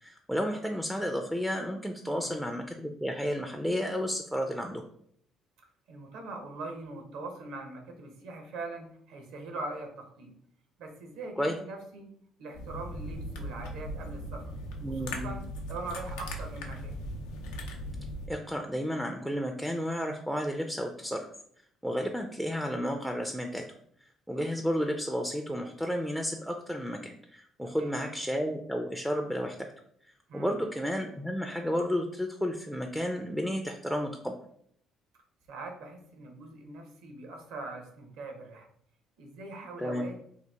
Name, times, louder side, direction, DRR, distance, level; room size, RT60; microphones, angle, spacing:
voice 1, 0.0-4.8 11.4-11.6 14.8-15.3 18.3-21.3 21.8-23.6 24.3-29.7 30.3-34.3 39.8-40.0, equal, ahead, 4 dB, 0.4 m, -32 dB
voice 2, 5.9-10.3 10.8-12.1 12.4-14.5 14.9-15.4 15.7-17.0 27.6-27.9 30.3-30.5 35.5-38.7 39.2-40.1, right 3 dB, 80° right, 4 dB, 0.7 m, -42 dB
sound 1, 12.5-18.3, equal, 90° left, 0.5 m, -38 dB
2.8 x 2.3 x 3.4 m, 0.65 s
supercardioid pair, 70°, 0 cm